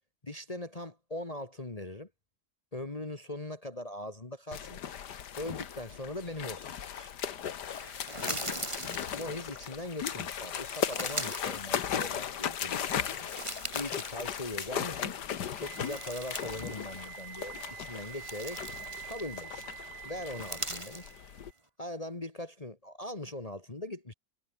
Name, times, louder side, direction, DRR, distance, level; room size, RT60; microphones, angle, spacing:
voice 1, 0.2-2.1 2.7-4.8 5.4-6.7 6.9-7.1 8.1-8.4 9.0-15.1 15.6-18.6 19.0-19.7 20.0-21.1 21.8-24.1, left 1 dB, 25° left, 1.8 m, -40 dB
sound 1, 4.5-21.5, left 9 dB, 85° left, 1.9 m, -37 dB
sound 2, 7.7-9.7 10.4-12.4 12.8-15.0 15.3-16.8 17.0-17.2 17.8-19.5 20.2-21.1, right 1 dB, 15° right, 2.9 m, -41 dB
Wind instrument woodwind instrument, 15.5-21.5, right 10 dB, 55° right, 1.0 m, -47 dB
omnidirectional pair, 1.7 m